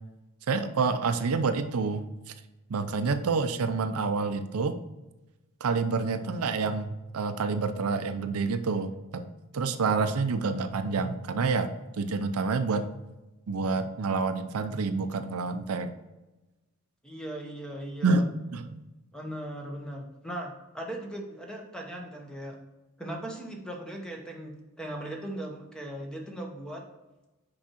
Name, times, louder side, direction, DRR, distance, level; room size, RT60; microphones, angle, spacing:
voice 1, 0.5-2.0 2.7-4.8 5.6-9.3 9.5-12.9 13.5-15.9 18.0-18.8, right 4 dB, 80° right, 9 dB, 0.5 m, -28 dB
voice 2, 17.0-18.3 19.1-22.6 23.0-26.8, right 1 dB, 5° left, 1 dB, 1.0 m, -38 dB
6.1 x 4.8 x 4.2 m, 1.0 s
head